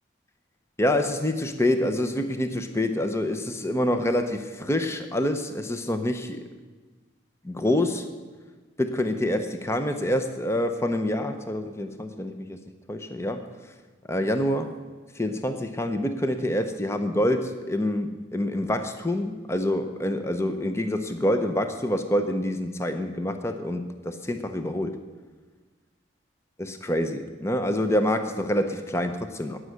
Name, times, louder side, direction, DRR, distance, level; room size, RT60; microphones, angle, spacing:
voice 1, 0.8-6.4 7.4-8.1 8.8-12.6 12.9-13.5 14.1-14.8 15.1-25.0 26.6-29.6, left 1 dB, 15° left, 7 dB, 0.6 m, -26 dB
14.0 x 6.3 x 9.5 m, 1.3 s
head